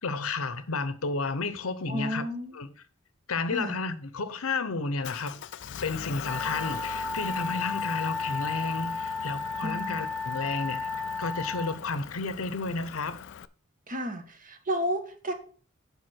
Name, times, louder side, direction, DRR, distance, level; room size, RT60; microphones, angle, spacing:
voice 1, 0.0-2.2 2.5-2.7 3.3-5.4 5.8-10.9 11.2-13.2, left 3 dB, 80° left, 0.9 m, -32 dB
voice 2, 1.9-2.5 3.5-3.8 9.6-10.1 13.9-15.3, equal, 40° right, 1.4 m, -32 dB
Motor vehicle (road) / Engine, 5.0-13.4, left 8 dB, 60° left, 0.4 m, -41 dB
Wind instrument woodwind instrument, 6.2-11.8, left 3 dB, 5° left, 0.6 m, -33 dB
7.7 x 5.2 x 6.2 m
head